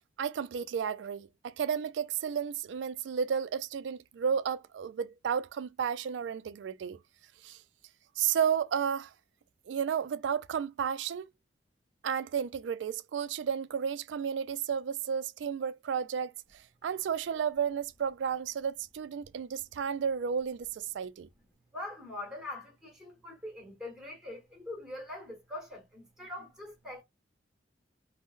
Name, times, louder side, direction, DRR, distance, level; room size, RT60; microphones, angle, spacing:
voice 1, 0.2-7.0 7.4-7.6 8.2-9.1 9.7-11.3 12.0-21.3, right 7 dB, 80° right, 0.3 m, -32 dB
voice 2, 21.7-27.0, left 2 dB, 5° right, 1.3 m, -43 dB
3.6 x 2.1 x 2.4 m
head